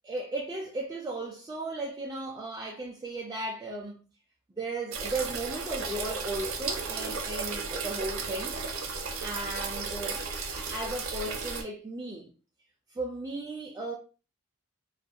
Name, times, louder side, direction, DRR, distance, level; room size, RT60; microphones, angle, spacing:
voice 1, 0.0-4.0 4.6-8.6 9.2-10.2 10.5-12.3 12.9-13.9, right 2 dB, 15° right, 0.3 m, -36 dB
sound 1, 4.9-11.6, right 4 dB, 70° right, 0.5 m, -34 dB
2.4 x 2.1 x 2.7 m
head